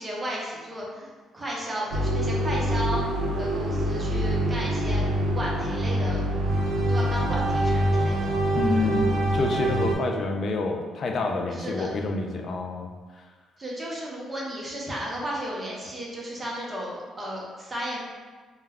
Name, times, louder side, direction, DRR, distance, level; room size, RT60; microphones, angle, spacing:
voice 1, 0.0-3.0 3.4-5.0 5.3-6.2 6.9-8.3 11.5-11.9 13.6-18.0, equal, 20° right, -4 dB, 0.7 m, -34 dB
sound 1, 1.9-9.9, right 1 dB, 85° right, 0.3 m, -25 dB
voice 2, 8.5-12.9, left 3 dB, 55° left, 3 dB, 0.3 m, -28 dB
2.2 x 2.1 x 3.4 m, 1.4 s
cardioid pair, 90°, 0 cm